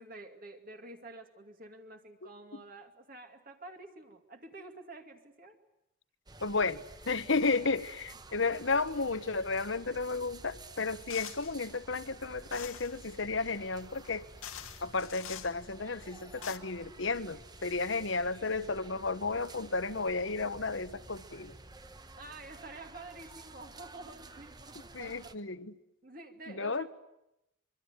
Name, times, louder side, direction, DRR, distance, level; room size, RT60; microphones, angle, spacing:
voice 1, 0.0-5.6 22.2-25.4 26.0-26.9, right 2 dB, 45° right, 2.4 m, -49 dB
sound 1, 6.3-25.3, right 2 dB, 20° right, 1.0 m, -52 dB
voice 2, 6.4-14.3 14.8-21.5 24.9-25.7 26.5-26.9, left 3 dB, 70° left, 1.3 m, -33 dB
sound 2, 11.1-11.6 12.5-13.0 13.9-14.0 14.4-15.5 16.2-16.6, left 9 dB, 90° left, 2.0 m, -44 dB
25.0 x 23.5 x 9.7 m
head